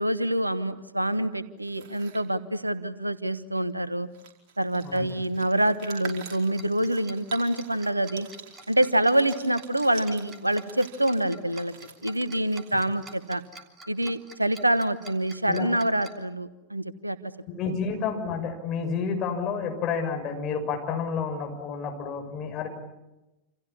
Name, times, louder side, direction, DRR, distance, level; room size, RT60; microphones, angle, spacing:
voice 1, 0.0-4.1 4.6-8.3 8.7-11.7 12.0-13.4 13.9-17.3 17.7-17.8, right 1 dB, 85° right, 15 dB, 1.2 m, -26 dB
sound 1, 1.6-2.3 3.7-3.8 4.0-13.6, right 6 dB, 50° right, 5.0 m, -47 dB
voice 2, 4.8-5.2 15.5-15.7 17.5-22.7, left 5 dB, 35° left, 4 dB, 6.2 m, -30 dB
Tick-tock, 6.0-16.1, right 3 dB, 20° right, 3.4 m, -47 dB
28.5 x 28.0 x 7.2 m, 0.99 s
figure-of-eight pair, 90°, 0 cm